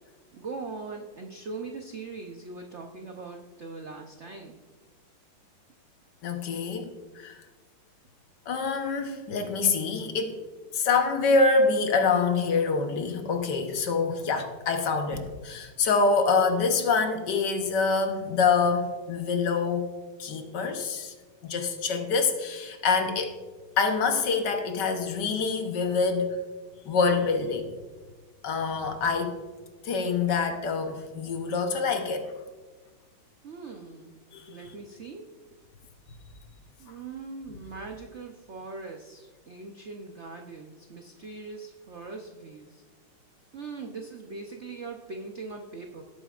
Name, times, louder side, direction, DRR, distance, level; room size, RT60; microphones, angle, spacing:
voice 1, 0.3-4.6 33.4-34.2 34.5-35.2 36.8-42.8 43.5-46.0, right 4 dB, 90° right, 2 dB, 0.6 m, -41 dB
voice 2, 6.2-6.9 7.1-7.3 8.5-10.4 10.7-19.9 20.2-21.1 21.4-23.3 23.8-26.4 26.8-27.7 28.4-29.4 29.8-32.3 34.3-34.5, left 4 dB, 60° left, 5 dB, 1.4 m, -26 dB
17.0 x 8.6 x 2.4 m, 1.3 s
omnidirectional pair, 2.3 m